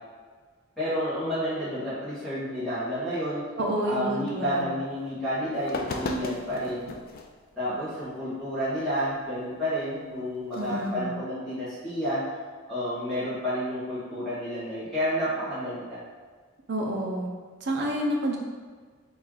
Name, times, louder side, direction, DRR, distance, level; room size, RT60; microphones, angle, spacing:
voice 1, 0.8-3.5 3.8-6.9 7.6-12.3 12.7-16.0, equal, ahead, -15 dB, 1.4 m, -30 dB
voice 2, 3.6-4.8 10.6-11.2 16.7-17.3 17.6-18.4, equal, 50° right, -1 dB, 0.6 m, -29 dB
sound 1, 5.1-5.2 5.6-7.3 8.0-8.1 10.4-10.9, left 3 dB, 40° left, 0.3 m, -36 dB
3.1 x 3.1 x 3.7 m, 1.5 s
head